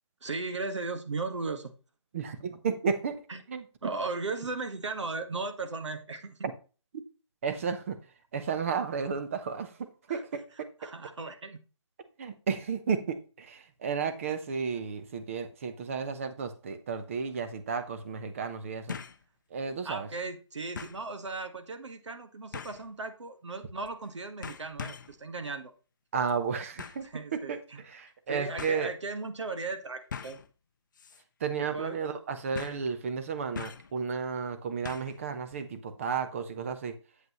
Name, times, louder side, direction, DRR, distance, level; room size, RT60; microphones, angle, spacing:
voice 1, 0.2-1.7 3.3-3.4 3.8-6.5 10.1-11.6 19.8-25.7 27.0-27.8 28.3-30.4 31.7-32.1, right 3 dB, 70° right, 7 dB, 1.5 m, -37 dB
voice 2, 2.1-3.2 3.5-3.6 7.4-8.0 8.3-9.7 10.1-10.7 12.2-19.0 19.5-20.1 26.1-27.0 27.3-27.6 27.9-28.9 31.4-36.9, right 6 dB, 25° right, 9 dB, 0.8 m, -33 dB
sound 1, 17.0-17.1 18.9-19.2 19.7-19.8 20.8-21.0 22.5-22.9 23.8-24.1 24.4-25.2 26.8-27.1 28.1-28.2 28.6-28.8 30.1-30.5 31.0-31.2 31.5-31.6 32.5-32.9 33.6-33.9 34.9-35.2 35.5-35.6, left 6 dB, 40° left, 0.6 m, -41 dB
8.0 x 7.9 x 3.0 m, 0.35 s
figure-of-eight pair, 160°, 15 cm